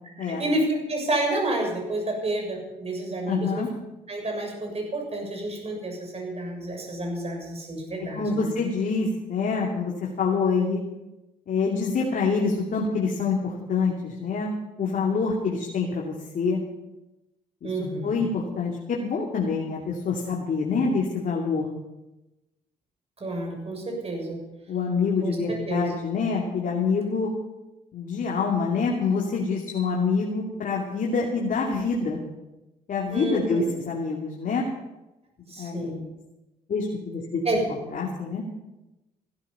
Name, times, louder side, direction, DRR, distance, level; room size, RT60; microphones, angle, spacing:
voice 1, 0.3-3.6 4.1-8.5 17.6-18.3 23.2-24.4 25.2-25.4 25.7-26.0 33.1-33.7 35.5-36.0 37.4-37.6, right 1 dB, 35° right, 1 dB, 7.3 m, -29 dB
voice 2, 3.3-3.7 8.0-10.8 11.5-14.5 14.8-16.6 17.6-21.7 24.7-27.3 27.9-32.2 32.9-34.7 35.4-35.9 36.7-37.4 37.9-38.4, left 4 dB, 55° left, -2 dB, 2.9 m, -26 dB
15.5 x 12.5 x 5.8 m, 1.0 s
supercardioid pair, 65°, 17 cm